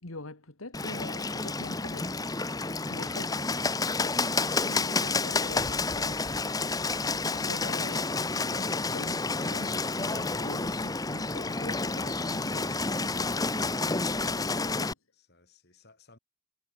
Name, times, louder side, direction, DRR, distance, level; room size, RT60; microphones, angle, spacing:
voice 1, 0.0-6.4 7.3-14.9, left 2 dB, 80° left, 2.3 m, -44 dB
Bird, 0.7-14.9, left 3 dB, 15° left, 1.0 m, -30 dB
voice 2, 13.9-16.2, left 2 dB, 50° left, 6.2 m, -60 dB
head